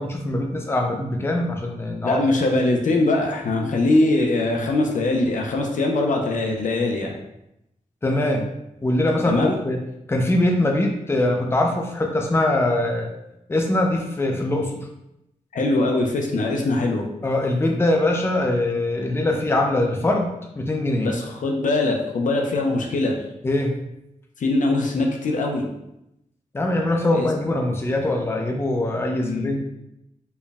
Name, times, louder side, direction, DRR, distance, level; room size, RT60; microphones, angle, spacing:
voice 1, 0.0-2.3 8.0-8.5 8.8-9.8 10.1-13.1 13.5-14.8 17.2-21.1 23.4-23.8 26.5-29.6, left 1 dB, 20° left, 2 dB, 0.5 m, -22 dB
voice 2, 2.0-7.1 9.3-9.6 15.5-17.0 21.0-23.1 24.4-25.6 27.1-27.3 29.2-29.6, left 2 dB, 80° left, 1 dB, 0.6 m, -22 dB
4.4 x 2.2 x 3.4 m, 0.86 s
wide cardioid pair, 100°, 13 cm